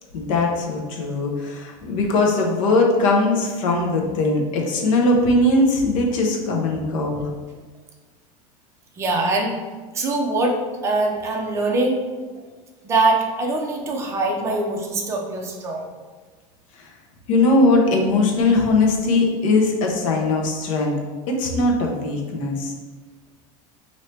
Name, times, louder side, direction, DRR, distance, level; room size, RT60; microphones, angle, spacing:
voice 1, 0.1-7.3 16.8-16.9 17.3-20.9 21.3-22.7, left 2 dB, 75° left, 0 dB, 0.9 m, -20 dB
voice 2, 9.0-9.5 9.9-10.6 10.8-12.0 12.8-15.9, right 2 dB, 15° right, 0 dB, 0.5 m, -22 dB
4.3 x 2.8 x 3.2 m, 1.4 s
supercardioid pair, 165°, 17 cm